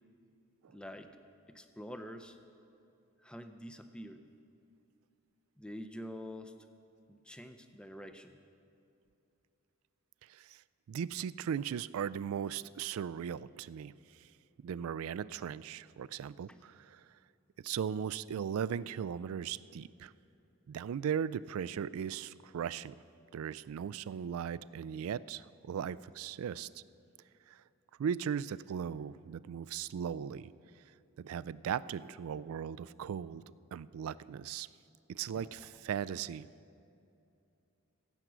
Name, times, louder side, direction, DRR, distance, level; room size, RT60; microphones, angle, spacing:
voice 1, 0.7-1.1 1.5-2.4 3.2-4.2 5.6-6.5 7.1-8.4 16.5-16.6 35.3-35.7, equal, 5° left, 7 dB, 0.5 m, -47 dB
voice 2, 10.2-10.6 10.9-14.3 14.6-17.0 17.6-20.1 20.7-22.9 23.3-26.8 27.5-27.6 28.0-30.5 31.2-33.4 33.7-34.7 35.1-36.5, right 8 dB, 80° right, 17 dB, 0.3 m, -38 dB
16.5 x 8.0 x 6.0 m, 2.7 s
head